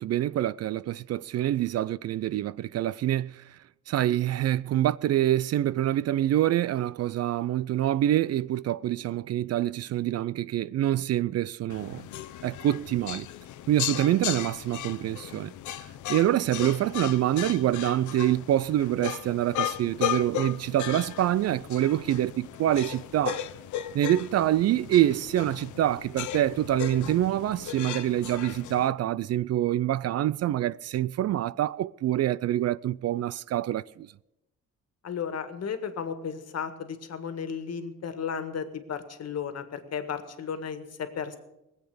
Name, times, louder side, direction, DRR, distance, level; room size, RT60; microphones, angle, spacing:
voice 1, 0.0-3.4 3.9-12.0 12.4-13.3 13.7-15.5 16.1-23.4 23.9-34.1, right 13 dB, 55° right, 0.4 m, -26 dB
sound 1, 11.7-28.9, left 11 dB, 75° left, 0.8 m, -36 dB
voice 2, 35.0-41.4, left 7 dB, 55° left, 1.7 m, -34 dB
19.5 x 8.1 x 6.9 m
cardioid pair, 90°, 30 cm